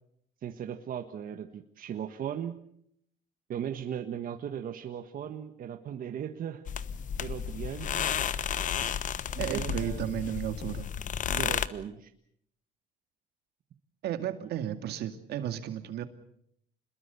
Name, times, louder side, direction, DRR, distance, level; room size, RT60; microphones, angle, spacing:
voice 1, 0.4-2.5 3.5-6.6 7.2-8.1 9.4-10.1 11.3-12.1 14.4-14.5, right 9 dB, 55° right, 6 dB, 1.6 m, -37 dB
sound 1, 6.7-11.7, left 8 dB, 50° left, 1.1 m, -32 dB
voice 2, 9.4-10.9 14.0-16.0, right 11 dB, 75° right, 8 dB, 2.3 m, -33 dB
27.5 x 21.5 x 7.0 m, 0.71 s
cardioid pair, 110°, 17 cm